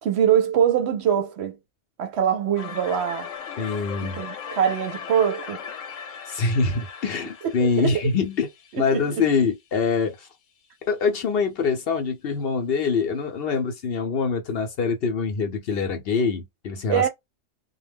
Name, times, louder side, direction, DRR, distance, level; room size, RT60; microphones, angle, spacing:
voice 1, 0.0-1.6 2.0-3.3 4.2-5.6 7.4-7.5 7.8-7.9 8.7-9.1 16.9-17.1, right 9 dB, 65° right, 0.8 m, -23 dB
sound 1, 2.6-9.4, left 7 dB, 85° left, 1.0 m, -38 dB
voice 2, 3.6-4.2 6.3-8.5 8.8-10.3 10.9-17.1, left 5 dB, 60° left, 0.7 m, -24 dB
2.2 x 2.1 x 3.4 m
omnidirectional pair, 1.3 m